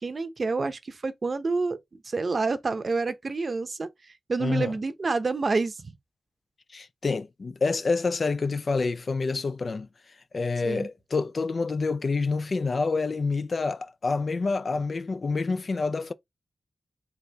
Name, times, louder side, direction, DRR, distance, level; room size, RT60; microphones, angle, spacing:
voice 1, 0.0-1.8 2.0-3.9 4.3-5.9 10.6-10.9, right 3 dB, 50° right, 0.7 m, -28 dB
voice 2, 4.4-4.7 6.7-9.9 10.3-16.1, left 4 dB, 55° left, 0.3 m, -27 dB
4.1 x 2.6 x 3.3 m
cardioid pair, 60°, 0 cm